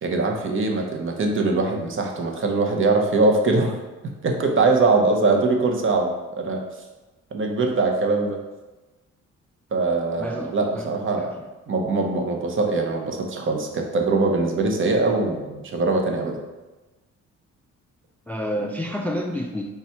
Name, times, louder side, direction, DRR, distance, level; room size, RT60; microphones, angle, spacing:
voice 1, 0.0-3.7 4.2-6.6 7.3-8.4 9.7-11.3 11.7-16.4, right 3 dB, 40° right, 2 dB, 0.8 m, -22 dB
voice 2, 10.2-10.8 11.1-11.4 18.3-19.6, equal, 5° left, 1 dB, 0.3 m, -29 dB
4.1 x 2.4 x 4.4 m, 1.2 s
cardioid pair, 90°, 30 cm